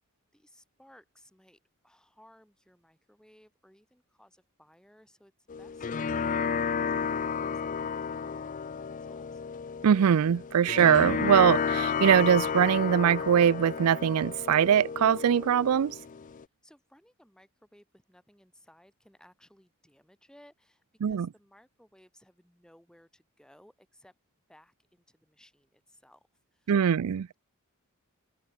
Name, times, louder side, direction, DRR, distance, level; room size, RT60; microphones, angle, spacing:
voice 1, 0.3-9.4 16.2-24.1 24.5-27.3, equal, 5° left, 7.1 m, -61 dB
sound 1, 5.5-16.4, left 6 dB, 35° left, 0.4 m, -32 dB
voice 2, 9.8-16.0 21.0-21.3 26.7-27.2, right 8 dB, 85° right, 0.4 m, -22 dB
head